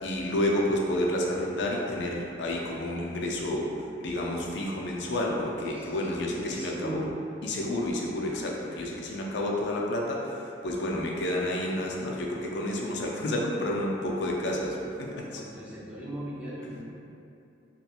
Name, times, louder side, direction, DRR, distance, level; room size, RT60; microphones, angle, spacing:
voice 1, 0.0-3.7 4.0-7.0 7.4-10.3 10.6-15.4, left 1 dB, 70° left, -1 dB, 0.4 m, -30 dB
voice 2, 5.7-7.1 15.3-16.8, right 1 dB, 5° right, -7 dB, 0.4 m, -38 dB
2.4 x 2.3 x 2.8 m, 2.6 s
head